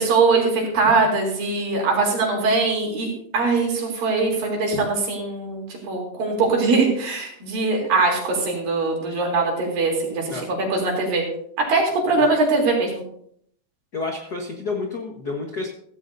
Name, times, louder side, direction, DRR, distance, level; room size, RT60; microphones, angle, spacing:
voice 1, 0.0-10.4 10.7-11.3 11.7-12.9, right 3 dB, 75° right, -1 dB, 5.0 m, -21 dB
voice 2, 13.9-15.7, left 3 dB, 80° left, 1 dB, 0.8 m, -29 dB
15.5 x 15.0 x 2.7 m, 0.66 s
omnidirectional pair, 4.1 m